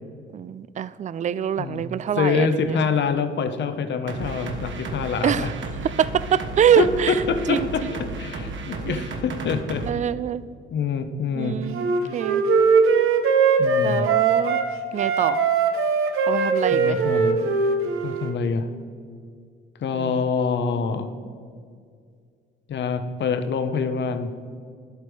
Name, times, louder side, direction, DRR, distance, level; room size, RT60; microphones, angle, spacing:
voice 1, 0.3-2.8 5.2-5.5 6.0-7.2 7.5-7.9 8.9-9.0 9.9-10.5 11.4-12.4 13.8-14.6 14.9-15.4 16.3-17.0 20.0-20.1, right 9 dB, 35° right, 17 dB, 0.4 m, -24 dB
voice 2, 1.6-1.9 2.2-5.5 6.8-9.9 10.7-11.6 13.6-14.1 16.7-17.4 18.0-18.7 19.8-21.1 22.7-24.3, left 5 dB, 60° left, 9 dB, 0.9 m, -25 dB
sound 1, 4.1-9.9, right 3 dB, 65° right, 1.4 m, -33 dB
Wind instrument woodwind instrument, 11.7-14.7 15.0-18.3, right 5 dB, 80° right, 1.0 m, -20 dB
10.5 x 8.2 x 4.8 m, 2.2 s
cardioid pair, 110°, 21 cm